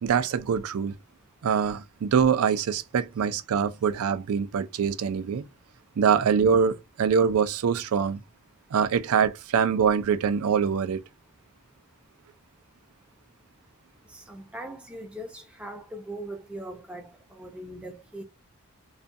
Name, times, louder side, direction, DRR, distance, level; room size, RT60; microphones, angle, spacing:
voice 1, 0.0-0.9 1.4-5.4 6.0-8.2 8.7-11.0, right 6 dB, 85° right, 0.4 m, -24 dB
voice 2, 14.0-18.2, right 1 dB, 5° right, 0.5 m, -40 dB
2.4 x 2.2 x 2.5 m
head